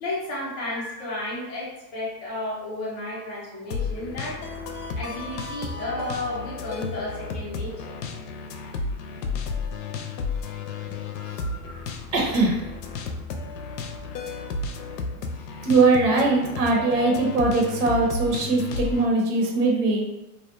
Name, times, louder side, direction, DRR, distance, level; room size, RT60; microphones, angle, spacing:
voice 1, 0.0-4.4 4.9-7.9 11.1-11.9, left 1 dB, 20° left, -6 dB, 0.3 m, -33 dB
sound 1, 3.7-19.1, left 4 dB, 80° left, 0.6 m, -33 dB
voice 2, 12.1-12.7 15.6-20.1, right 3 dB, 75° right, 0 dB, 0.9 m, -21 dB
2.5 x 2.1 x 2.5 m, 0.93 s
supercardioid pair, 140°, 47 cm